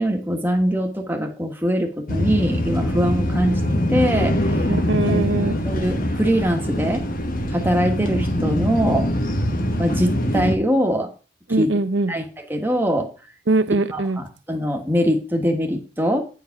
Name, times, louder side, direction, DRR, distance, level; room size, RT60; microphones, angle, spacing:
voice 1, 0.0-3.6 3.9-4.7 5.1-5.2 5.6-7.0 7.5-9.1 9.8-11.1 11.6-11.7 12.1-12.2 12.5-13.1 13.9-16.2, equal, 10° right, 3 dB, 1.4 m, -22 dB
sound 1, 2.1-10.5, left 1 dB, 50° left, 1.2 m, -23 dB
voice 2, 4.7-5.6 11.5-12.2 13.5-14.2, right 2 dB, 75° right, 12 dB, 0.8 m, -21 dB
9.0 x 4.8 x 5.9 m, 0.34 s
head